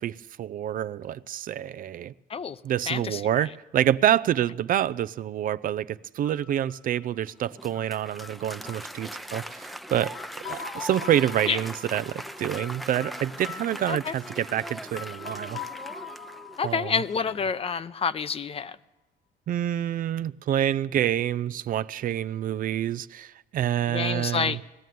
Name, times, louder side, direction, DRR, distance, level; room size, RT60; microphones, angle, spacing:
voice 1, 0.0-2.1 2.6-10.2 10.5-15.6 16.6-16.9 19.5-24.6, right 11 dB, 55° right, 0.6 m, -27 dB
voice 2, 2.9-3.5 11.5-11.6 13.9-14.1 16.6-18.8 23.9-24.6, left 6 dB, 35° left, 0.8 m, -28 dB
sound 1, 6.3-18.0, left 6 dB, 70° left, 1.3 m, -44 dB
Applause, 7.3-16.9, equal, ahead, 0.7 m, -40 dB
20.0 x 14.5 x 9.3 m
cardioid pair, 110°, 17 cm